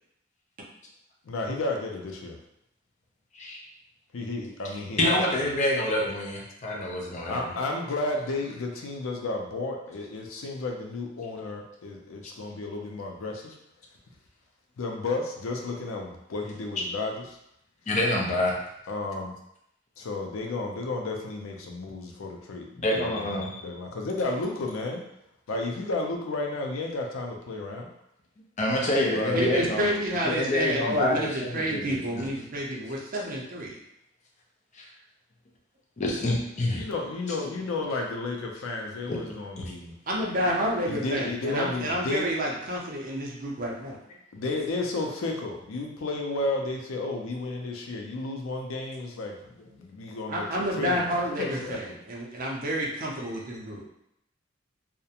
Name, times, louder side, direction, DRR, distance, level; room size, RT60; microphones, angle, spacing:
voice 1, 1.3-2.4 4.1-5.2 7.3-13.6 14.8-17.4 18.9-19.3 20.0-25.0 25.5-27.9 29.1-29.6 29.9-30.0 36.7-39.9 40.9-42.3 44.3-51.0 51.4-51.8, left 2 dB, 90° left, 1 dB, 0.5 m, -32 dB
voice 2, 5.0-7.5 16.8-16.9 17.9-18.6 22.8-23.6 28.6-29.9 30.2-32.3 34.8-34.9 36.0-36.8 39.1-39.2 39.6-39.7, left 1 dB, 35° left, -1 dB, 0.5 m, -27 dB
voice 3, 29.1-33.8 40.1-44.0 50.3-53.8, equal, 45° right, -2 dB, 0.5 m, -29 dB
2.4 x 2.1 x 2.8 m, 0.79 s
head